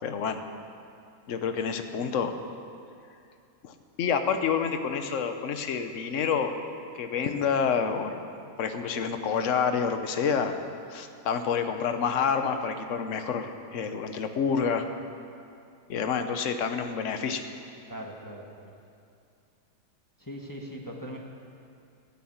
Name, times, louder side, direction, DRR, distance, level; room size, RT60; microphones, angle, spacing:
voice 1, 0.0-0.4 1.3-2.3 3.6-6.5 6.9-8.3 8.6-10.6 10.9-14.9 15.9-17.4, left 6 dB, 55° left, 8 dB, 1.2 m, -28 dB
voice 2, 17.9-18.7 20.2-21.2, equal, 15° left, -1 dB, 1.3 m, -40 dB
13.5 x 9.4 x 8.8 m, 2.5 s
omnidirectional pair, 1.7 m